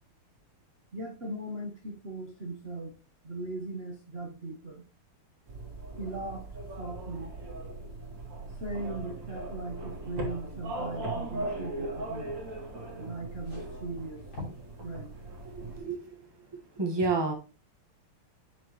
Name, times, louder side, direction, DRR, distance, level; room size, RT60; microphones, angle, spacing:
voice 1, 0.9-2.9 3.2-4.8 6.0-6.4 6.8-7.3 8.6-12.4 13.0-14.2 14.8-15.1, right 2 dB, 35° right, -1 dB, 1.1 m, -38 dB
sound 1, 5.5-15.8, right 2 dB, 55° right, 2.7 m, -39 dB
sound 2, 13.4-14.8 15.1-15.3 16.4-16.5, left 2 dB, 50° left, 4.2 m, -45 dB
voice 2, 15.5-16.0 16.8-17.3, right 3 dB, 15° right, 2 dB, 1.3 m, -29 dB
7.7 x 6.7 x 3.1 m, 0.33 s
omnidirectional pair, 2.4 m